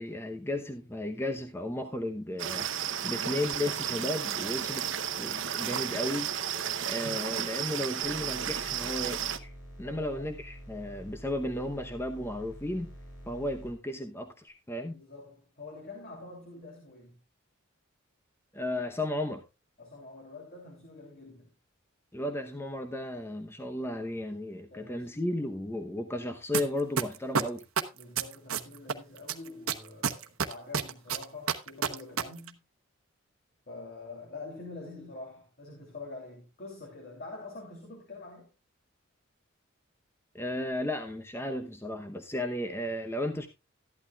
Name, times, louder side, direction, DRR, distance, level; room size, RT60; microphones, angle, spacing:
voice 1, 0.0-4.9 5.2-6.5 6.8-9.5 9.8-12.9 13.3-15.0 18.5-19.4 22.1-27.6 40.3-43.5, left 1 dB, 10° left, 0.8 m, -34 dB
sound 1, 2.4-9.4, right 9 dB, 60° right, 0.8 m, -33 dB
sound 2, 8.0-13.7, equal, 70° left, 6.4 m, -47 dB
voice 2, 9.8-10.3 14.9-17.2 19.8-21.5 24.7-25.6 27.9-32.6 33.7-38.5, left 3 dB, 45° left, 3.0 m, -46 dB
sound 3, 26.5-26.6 27.0-28.9 29.3-32.2 32.5-32.6, right 6 dB, 90° right, 1.0 m, -28 dB
14.0 x 11.5 x 2.3 m
head